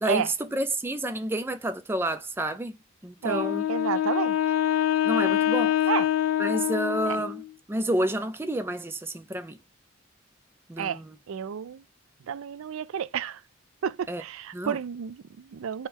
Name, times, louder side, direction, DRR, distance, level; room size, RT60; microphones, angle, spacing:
voice 1, 0.0-2.8 3.0-3.7 5.0-5.8 6.4-7.4 7.7-9.6 10.7-11.1 14.1-14.2 14.5-14.8, right 1 dB, 10° right, 0.3 m, -29 dB
voice 2, 3.2-4.4 5.9-6.1 7.1-7.2 10.8-11.0 11.3-11.8 12.3-13.4 13.8-15.9, right 8 dB, 85° right, 0.4 m, -31 dB
Wind instrument woodwind instrument, 3.3-7.5, left 11 dB, 85° left, 0.3 m, -25 dB
4.3 x 2.2 x 3.5 m
head